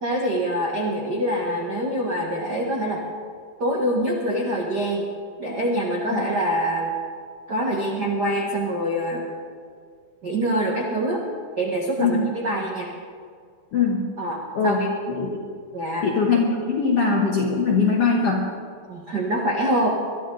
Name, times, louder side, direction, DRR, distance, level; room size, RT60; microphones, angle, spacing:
voice 1, 0.0-3.0 3.6-5.1 5.4-6.9 7.5-9.3 10.2-11.2 11.6-12.9 14.2-14.9 15.7-16.1 18.9-19.9, right 1 dB, 55° right, -2 dB, 1.1 m, -25 dB
voice 2, 13.7-14.2 14.5-15.4 16.0-18.5, left 4 dB, 60° left, -1 dB, 1.6 m, -22 dB
22.0 x 13.0 x 3.9 m, 2.1 s
omnidirectional pair, 4.3 m